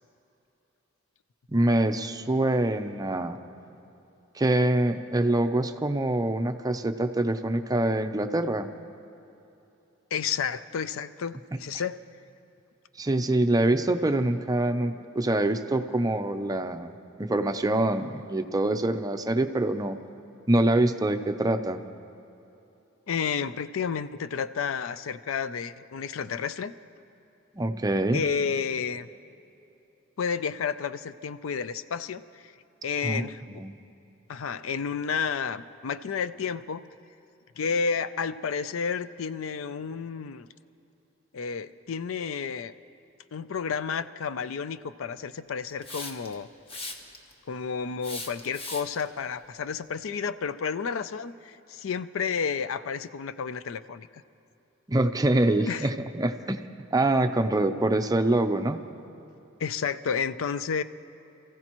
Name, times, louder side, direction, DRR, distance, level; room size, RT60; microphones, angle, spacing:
voice 1, 1.5-3.4 4.3-8.7 13.0-16.9 17.2-20.0 20.5-21.8 27.5-28.2 33.0-33.3 33.6-33.7 54.9-56.6 56.9-58.8, right 1 dB, 20° right, 7 dB, 0.5 m, -25 dB
voice 2, 10.1-12.0 23.1-26.7 28.1-29.1 30.2-32.2 32.8-33.6 34.3-36.8 37.6-40.5 41.3-42.7 43.3-46.5 47.5-54.1 55.7-55.9 59.6-60.8, left 6 dB, 90° left, 14 dB, 0.4 m, -31 dB
Hiss, 45.8-46.3 46.7-47.3 48.0-49.0, left 2 dB, 30° left, 1.2 m, -38 dB
27.5 x 15.0 x 3.0 m, 2.9 s
head